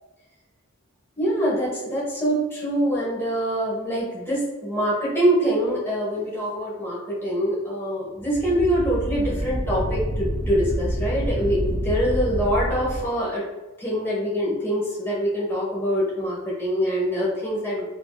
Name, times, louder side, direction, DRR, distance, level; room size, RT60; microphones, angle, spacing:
voice 1, 1.2-13.4 13.8-17.8, equal, 10° left, -7 dB, 1.4 m, -24 dB
sound 1, 8.2-13.0, equal, 70° right, 0.9 m, -27 dB
4.3 x 2.9 x 2.4 m, 1.1 s
head